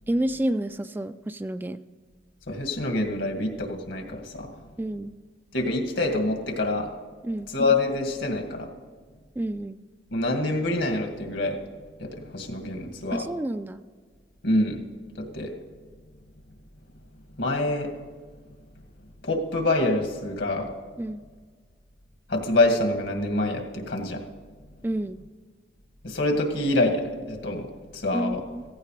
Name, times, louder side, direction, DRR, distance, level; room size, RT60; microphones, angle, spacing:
voice 1, 0.1-1.8 4.8-5.1 7.2-7.5 9.4-9.8 13.1-13.8 21.0-21.2 24.8-25.2 28.1-28.6, right 1 dB, 10° right, 11 dB, 0.3 m, -29 dB
voice 2, 2.5-4.5 5.5-6.9 7.5-8.7 10.1-11.6 12.0-13.2 14.4-14.9 15.1-15.5 17.4-17.9 19.2-20.7 22.3-24.2 26.0-28.4, left 2 dB, 80° left, 2 dB, 2.1 m, -26 dB
16.0 x 15.5 x 3.3 m, 1.5 s
head